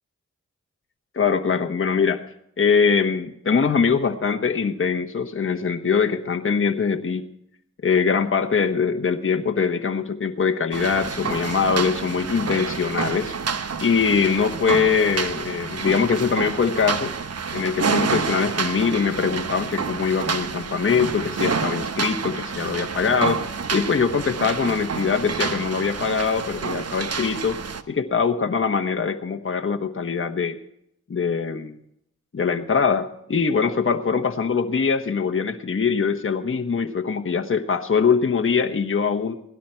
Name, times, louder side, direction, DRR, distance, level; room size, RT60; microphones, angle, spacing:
voice 1, 1.1-2.2 2.6-7.2 7.8-13.3 13.8-17.1 17.5-23.4 23.7-27.6 27.9-30.6 31.1-31.7 32.3-39.4, left 5 dB, 45° left, 6 dB, 1.1 m, -22 dB
sound 1, 10.7-27.8, right 5 dB, 55° right, 1.0 m, -28 dB
17.5 x 12.0 x 4.4 m, 0.74 s
cardioid pair, 50°, 30 cm